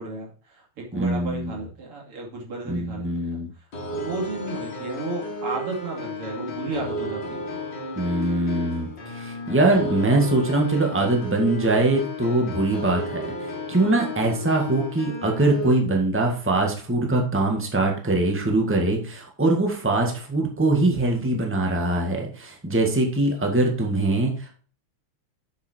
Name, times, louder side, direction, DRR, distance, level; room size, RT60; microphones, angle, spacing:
voice 1, 0.0-3.4 3.9-7.4, right 3 dB, 90° right, -2 dB, 3.6 m, -33 dB
voice 2, 0.9-1.5 2.6-3.5 7.9-13.3 13.7-24.5, right 2 dB, 5° right, 1 dB, 1.6 m, -22 dB
sound 1, 3.7-15.7, left 1 dB, 55° left, 2.6 m, -33 dB
7.6 x 7.1 x 4.4 m, 0.41 s
omnidirectional pair, 2.4 m